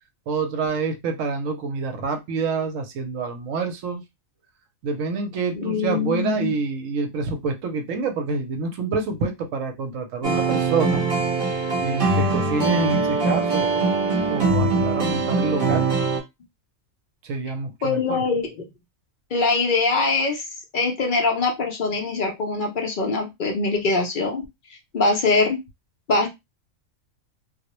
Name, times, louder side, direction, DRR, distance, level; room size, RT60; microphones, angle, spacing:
voice 1, 0.3-4.0 4.8-11.0 11.8-14.0 14.3-15.9 17.2-18.0, right 4 dB, 75° right, 1.0 m, -27 dB
voice 2, 5.5-6.5 17.8-18.7 19.3-20.5 20.7-25.6 26.1-26.3, left 3 dB, 55° left, 0.5 m, -23 dB
sound 1, 10.2-16.2, right 3 dB, 40° right, 1.1 m, -22 dB
2.4 x 2.0 x 2.9 m
omnidirectional pair, 1.4 m